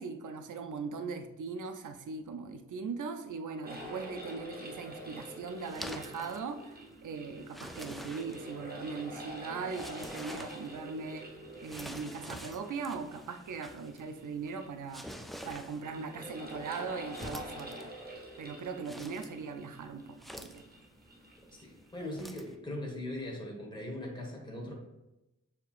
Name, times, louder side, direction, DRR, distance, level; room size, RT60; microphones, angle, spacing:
voice 1, 0.0-6.8 7.0-11.3 11.6-15.1 15.4-17.9 18.4-20.6, right 5 dB, 85° right, 7 dB, 0.5 m, -40 dB
sound 1, 3.6-22.3, right 1 dB, 30° right, 0.9 m, -47 dB
sound 2, 4.8-22.5, equal, ahead, 0.3 m, -49 dB
voice 2, 21.5-24.7, left 1 dB, 15° left, -1 dB, 1.2 m, -40 dB
6.4 x 2.9 x 2.4 m, 0.96 s
wide cardioid pair, 70°, 30 cm